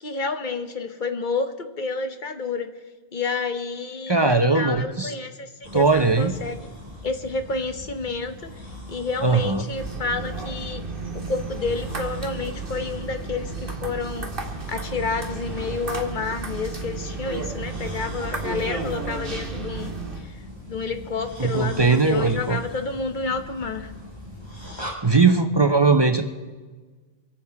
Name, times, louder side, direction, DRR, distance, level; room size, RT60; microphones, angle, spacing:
voice 1, 0.0-2.7 3.1-6.6 7.0-8.5 8.9-10.8 11.3-14.3 14.7-19.9 20.3-20.4 20.7-23.9, left 4 dB, 50° left, 8 dB, 1.2 m, -29 dB
voice 2, 4.1-5.1 5.7-6.4 9.2-9.7 21.4-22.6 25.0-26.2, right 4 dB, 25° right, 7 dB, 0.7 m, -19 dB
sound 1, 5.6-24.9, left 1 dB, 25° left, 3.2 m, -41 dB
sound 2, 9.8-20.2, right 4 dB, 60° right, 2.1 m, -33 dB
24.5 x 9.0 x 4.8 m, 1.4 s
omnidirectional pair, 1.1 m